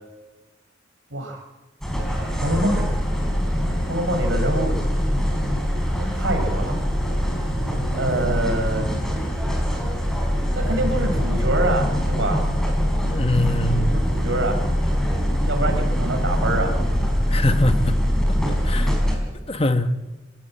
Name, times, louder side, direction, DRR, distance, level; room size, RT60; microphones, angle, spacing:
sound 1, 1.8-19.2, equal, 5° left, 4.5 m, -23 dB
voice 1, 2.4-2.9 3.9-4.8 6.1-6.8 8.0-8.9 10.5-12.4 13.7-14.6 15.3-16.7 18.1-18.2, right 1 dB, 90° right, 4 dB, 4.8 m, -25 dB
voice 2, 13.1-14.0 17.3-17.9 18.5-18.9 19.5-19.9, left 1 dB, 30° left, 9 dB, 1.1 m, -23 dB
25.5 x 14.5 x 8.7 m, 1.2 s
head